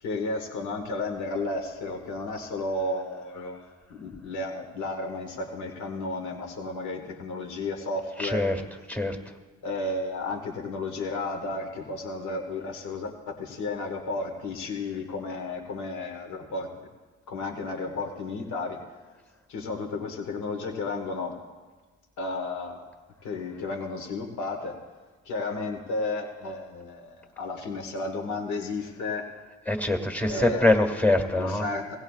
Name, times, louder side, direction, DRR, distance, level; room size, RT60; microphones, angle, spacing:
voice 1, 0.0-3.6 3.9-8.5 9.6-16.9 17.3-18.8 19.5-21.4 22.2-22.9 23.2-24.8 25.3-29.3 30.3-30.8 31.3-32.0, left 2 dB, 75° left, 2 dB, 1.9 m, -33 dB
voice 2, 8.2-8.6 8.9-9.2 29.7-31.6, left 2 dB, 5° left, 3 dB, 2.0 m, -23 dB
18.5 x 16.5 x 2.5 m, 1.3 s
cardioid pair, 90°, 30 cm